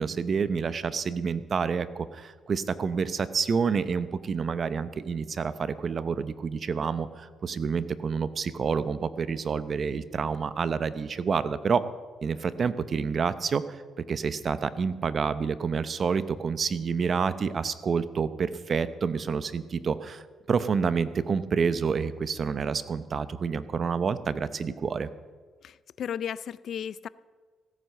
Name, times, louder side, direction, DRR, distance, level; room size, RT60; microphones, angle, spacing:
voice 1, 0.0-11.8 12.2-13.8 14.1-20.2 20.5-25.1, right 5 dB, 45° right, 14 dB, 0.8 m, -28 dB
voice 2, 25.6-27.1, left 9 dB, 65° left, 19 dB, 0.4 m, -35 dB
16.0 x 9.4 x 6.6 m, 1.5 s
cardioid pair, 90°, 0 cm